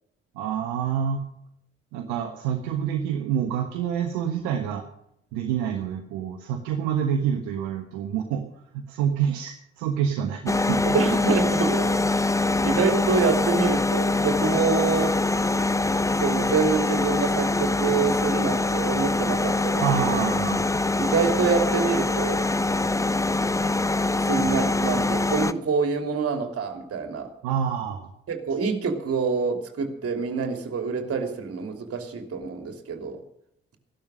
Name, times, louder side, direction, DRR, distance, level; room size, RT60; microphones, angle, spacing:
voice 1, 0.3-1.2 1.9-4.8 5.3-8.4 8.7-10.8 19.8-20.9 27.4-28.1, right 8 dB, 70° right, 5 dB, 1.4 m, -27 dB
sound 1, 10.5-25.5, left 2 dB, 10° left, 0.8 m, -24 dB
voice 2, 10.8-12.4 12.6-15.2 16.2-20.2 21.0-22.5 24.3-27.3 28.3-33.2, right 5 dB, 50° right, 5 dB, 3.0 m, -26 dB
15.5 x 12.0 x 6.3 m, 0.74 s
figure-of-eight pair, 40°, 30 cm